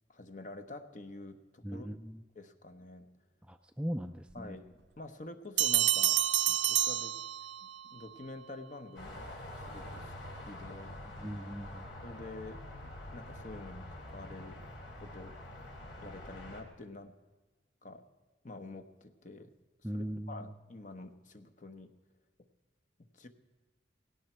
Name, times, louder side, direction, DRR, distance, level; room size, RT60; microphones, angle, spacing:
voice 1, 0.1-1.9 2.3-3.1 4.3-6.2 6.5-7.2 7.6-10.1 10.5-11.0 12.0-14.6 15.0-15.4 16.0-17.2 17.8-18.0 18.4-19.5 19.9-21.9 23.1-23.3, left 2 dB, 40° left, 7 dB, 1.0 m, -48 dB
voice 2, 1.6-2.2 3.5-4.6 11.2-11.8 19.8-20.5, equal, 5° right, 6 dB, 0.4 m, -39 dB
sound 1, 5.6-7.8, right 13 dB, 65° right, 0.6 m, -28 dB
sound 2, 9.0-16.6, left 1 dB, 75° left, 3.2 m, -46 dB
17.5 x 17.0 x 4.5 m, 1.2 s
head